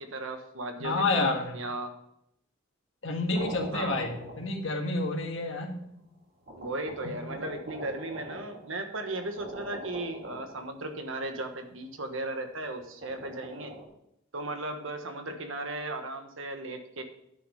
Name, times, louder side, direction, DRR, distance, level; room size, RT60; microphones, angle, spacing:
voice 1, 0.0-1.9 3.7-4.1 6.6-13.7 14.3-17.0, right 2 dB, 75° right, 6 dB, 1.3 m, -36 dB
voice 2, 0.8-1.6 3.0-5.8 7.0-7.3, left 3 dB, 65° left, 2 dB, 1.8 m, -29 dB
sound 1, 3.3-4.9 5.8-5.9 6.5-11.0 12.8-13.8, right 1 dB, 50° right, 2.2 m, -43 dB
9.8 x 6.3 x 5.5 m, 0.76 s
head